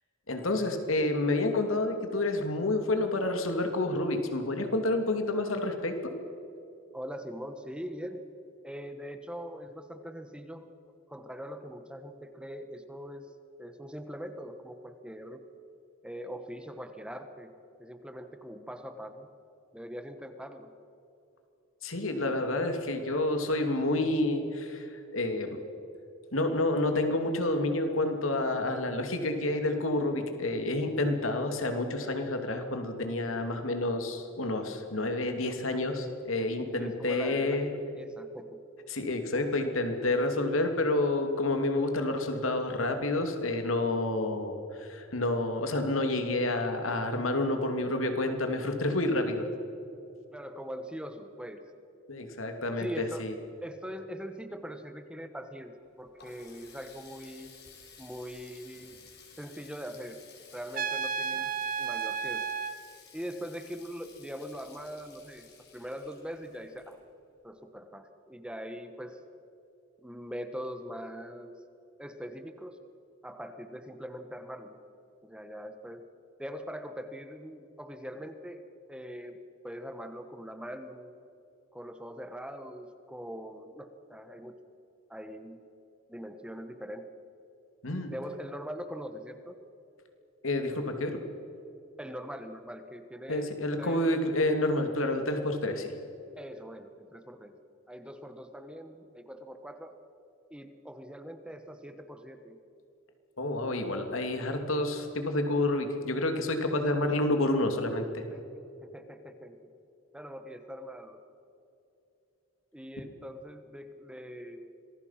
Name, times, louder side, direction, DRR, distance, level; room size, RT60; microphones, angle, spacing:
voice 1, 0.3-6.1 21.8-25.6 26.3-37.7 38.9-49.4 52.1-53.3 87.8-88.1 90.4-91.2 93.3-95.9 103.4-108.2, left 2 dB, 85° left, 5 dB, 2.7 m, -29 dB
voice 2, 6.9-8.2 8.6-10.7 11.1-13.3 13.6-15.4 16.0-19.3 19.7-20.7 36.8-38.6 50.3-51.7 52.8-53.2 53.6-57.5 58.0-59.0 59.4-60.2 60.5-61.5 61.8-62.5 63.1-67.0 67.4-69.2 70.0-71.6 72.0-72.8 73.2-74.8 75.2-76.1 76.4-78.6 78.9-81.1 81.7-84.6 85.1-85.6 86.1-87.1 88.1-89.6 92.0-94.4 96.4-97.6 97.9-100.0 100.5-102.6 108.3-108.4 108.8-109.6 110.1-111.2 112.7-114.7, equal, 5° right, 8 dB, 1.3 m, -42 dB
Water tap faucet, 55.7-67.4, left 6 dB, 55° left, 4.7 m, -55 dB
Trumpet, 60.7-62.8, right 6 dB, 45° right, 1.0 m, -32 dB
26.0 x 20.5 x 5.9 m, 2.8 s
head